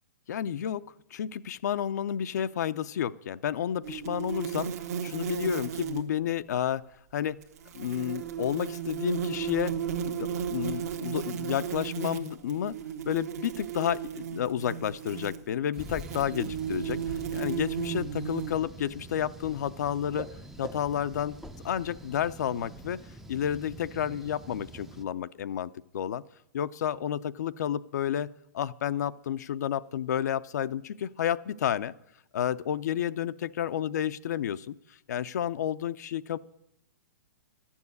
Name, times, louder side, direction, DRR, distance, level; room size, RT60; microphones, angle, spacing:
voice 1, 0.3-0.8 1.1-4.7 5.0-6.8 7.1-7.4 7.7-9.8 10.0-12.8 13.0-20.3 20.6-21.4 21.6-23.0 23.3-26.2 26.5-31.9 32.3-36.4, left 10 dB, 65° left, 12 dB, 0.5 m, -31 dB
sound 1, 3.8-6.1 7.4-18.5, right 8 dB, 55° right, 1.2 m, -35 dB
sound 2, 15.8-25.0, right 2 dB, 5° right, 0.5 m, -45 dB
12.5 x 7.2 x 9.6 m, 0.82 s
hypercardioid pair, 140°, 10 cm